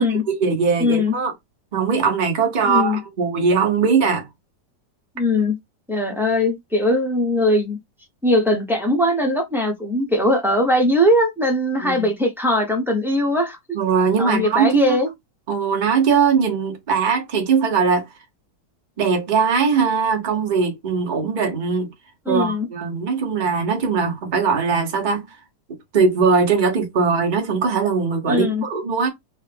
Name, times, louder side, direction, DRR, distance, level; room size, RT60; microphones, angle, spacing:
voice 1, 0.0-1.3 1.7-4.3 11.8-12.1 13.7-15.0 15.5-18.0 19.0-21.9 22.3-25.3 25.9-29.1, right 5 dB, 35° right, 0.9 m, -20 dB
voice 2, 0.8-1.1 2.6-3.0 5.2-5.6 5.9-7.8 8.2-13.6 14.2-15.1 22.3-22.7 28.3-28.6, left 1 dB, 5° right, 0.3 m, -20 dB
4.5 x 2.2 x 3.3 m
omnidirectional pair, 1.8 m